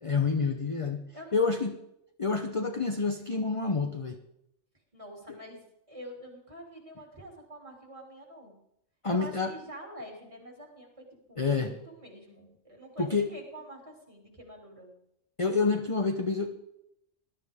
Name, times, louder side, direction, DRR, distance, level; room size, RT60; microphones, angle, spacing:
voice 1, 0.0-1.0 1.3-1.8 2.2-4.2 9.0-9.5 11.4-11.7 13.0-13.3 15.4-16.5, left 4 dB, 30° left, 5 dB, 0.8 m, -28 dB
voice 2, 4.9-8.6 9.1-14.9, right 1 dB, 25° right, -1 dB, 3.1 m, -47 dB
20.5 x 12.5 x 3.6 m, 0.81 s
omnidirectional pair, 1.3 m